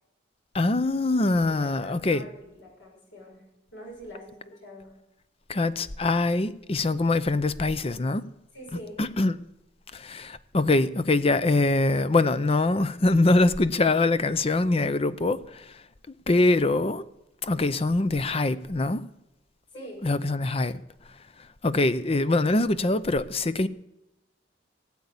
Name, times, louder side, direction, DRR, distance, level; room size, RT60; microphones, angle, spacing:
voice 1, 0.5-2.3 5.5-8.3 9.0-9.4 9.9-15.8 16.3-17.0 17.4-19.0 20.0-20.8 21.6-23.7, left 2 dB, 30° left, 0.6 m, -23 dB
voice 2, 1.5-3.4 3.7-4.9 8.5-9.0 19.7-20.0, equal, 80° left, 6.2 m, -44 dB
17.0 x 8.4 x 8.4 m
head